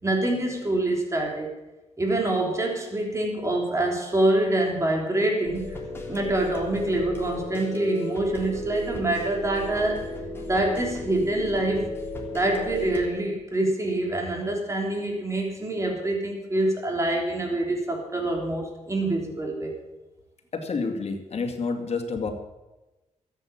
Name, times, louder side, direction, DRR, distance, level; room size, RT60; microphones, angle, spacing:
voice 1, 0.0-1.6 2.0-5.8 6.1-10.0 10.4-11.9 12.3-19.7, right 1 dB, 25° right, 0 dB, 3.2 m, -26 dB
sound 1, 5.4-13.1, left 1 dB, 20° left, 3.5 m, -35 dB
voice 2, 20.5-22.3, left 4 dB, 55° left, 4 dB, 2.3 m, -29 dB
13.5 x 8.4 x 8.7 m, 1.1 s
cardioid pair, 100°, 13 cm